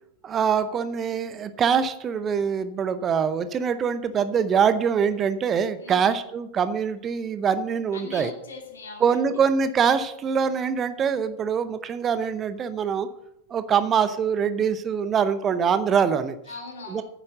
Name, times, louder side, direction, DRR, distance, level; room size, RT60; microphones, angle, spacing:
voice 1, 0.2-8.3 9.0-13.1 13.5-16.4 16.9-17.0, right 7 dB, 25° right, 12 dB, 0.7 m, -24 dB
voice 2, 5.8-6.2 7.9-9.5 16.5-17.0, left 4 dB, 65° left, 2 dB, 2.7 m, -40 dB
9.8 x 7.5 x 6.6 m, 0.77 s
figure-of-eight pair, 90°, 0 cm